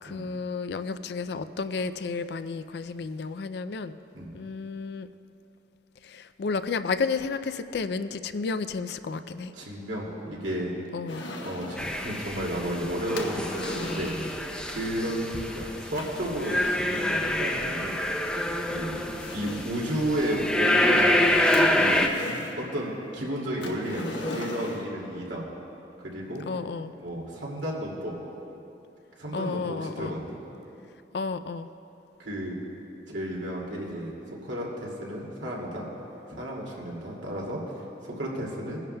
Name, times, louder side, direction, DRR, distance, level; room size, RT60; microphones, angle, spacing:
voice 1, 0.0-3.9 4.3-5.1 6.0-9.5 10.9-11.3 26.5-26.9 29.3-30.2 31.1-31.7, left 4 dB, 65° left, 12 dB, 0.4 m, -32 dB
voice 2, 9.6-10.7 11.4-14.1 14.7-18.0 18.6-19.0 19.3-22.0 22.6-25.5 26.0-26.4 27.0-28.1 29.2-30.4 32.2-32.6 33.1-34.1 34.4-35.9 36.3-37.6 38.0-38.8, equal, 90° right, -3 dB, 2.3 m, -32 dB
sound 1, 11.1-12.0 13.1-14.5 16.0-17.3 18.3-18.4 18.9-19.9 21.0-22.6 23.6-25.0, left 2 dB, 85° left, 1.1 m, -38 dB
sound 2, 11.8-22.1, left 1 dB, 5° left, 0.5 m, -27 dB
21.5 x 10.5 x 2.2 m, 2.9 s
head